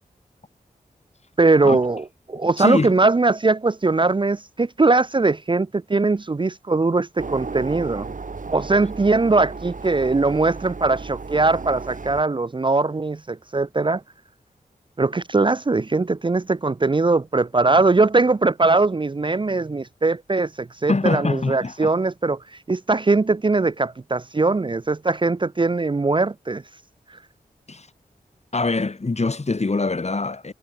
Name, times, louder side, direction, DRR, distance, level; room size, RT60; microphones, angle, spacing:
voice 1, 1.4-8.1 8.5-14.0 15.0-22.4 22.7-26.6, right 3 dB, 30° right, 0.6 m, -20 dB
voice 2, 2.6-2.9 20.9-21.9 27.7-27.9 28.5-30.5, left 3 dB, 45° left, 2.0 m, -23 dB
sound 1, 7.2-12.2, right 4 dB, 55° right, 2.1 m, -34 dB
cardioid pair, 45°, 16 cm